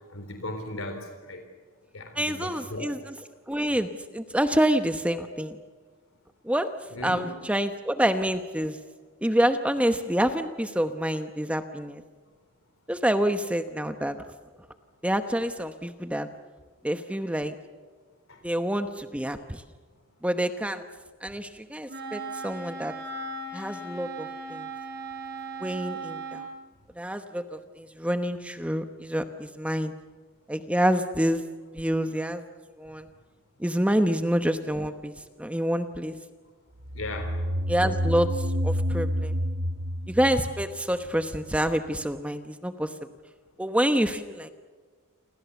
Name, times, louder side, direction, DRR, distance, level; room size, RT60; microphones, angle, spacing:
voice 1, 0.1-1.4 1.9-2.9 6.9-7.4 18.3-18.4 36.9-37.4, left 2 dB, 85° left, 6 dB, 3.8 m, -37 dB
voice 2, 2.1-3.2 3.5-5.6 6.4-6.7 7.0-8.8 9.2-12.0 12.9-14.2 15.0-16.3 16.8-17.5 18.4-19.6 20.2-20.8 21.2-22.9 23.5-24.7 25.6-26.4 27.0-29.9 30.5-31.4 31.7-32.4 32.8-33.1 33.6-35.1 35.4-36.2 37.7-39.3 40.1-43.0 43.6-44.5, equal, 5° right, 8 dB, 1.0 m, -27 dB
Wind instrument woodwind instrument, 21.9-26.5, right 3 dB, 50° right, 7.1 m, -37 dB
sound 1, 36.8-41.4, equal, 80° right, 1.8 m, -29 dB
29.5 x 25.0 x 7.1 m, 1.5 s
head